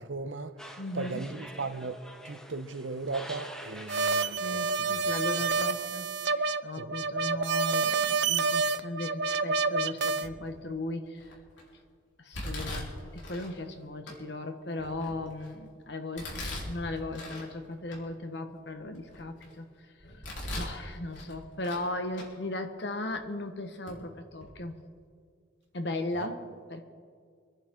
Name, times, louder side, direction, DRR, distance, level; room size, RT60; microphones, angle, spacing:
voice 1, 0.0-2.0 2.2-4.6 6.8-6.9 26.1-26.3, right 3 dB, 80° right, 10 dB, 0.9 m, -37 dB
sound 1, 0.6-5.9, equal, 5° left, 0.8 m, -47 dB
voice 2, 0.8-1.2 4.4-6.1 6.3-11.3 12.2-19.7 20.1-20.2 20.5-24.8 25.7-26.4 26.7-26.8, left 2 dB, 60° left, 6 dB, 1.4 m, -37 dB
sound 2, 3.9-10.3, right 4 dB, 60° right, 0.5 m, -28 dB
Domestic sounds home sounds, 10.2-10.6 11.2-11.6 12.3-13.5 14.1-14.2 14.7-15.5 16.2-17.5 17.9-18.0 18.6-19.5 20.0-20.8 21.1-21.9 22.1-22.3 23.1-23.2 23.9-24.0 24.3-24.5, left 1 dB, 75° left, 4.2 m, -40 dB
25.5 x 11.0 x 3.8 m, 2.1 s
head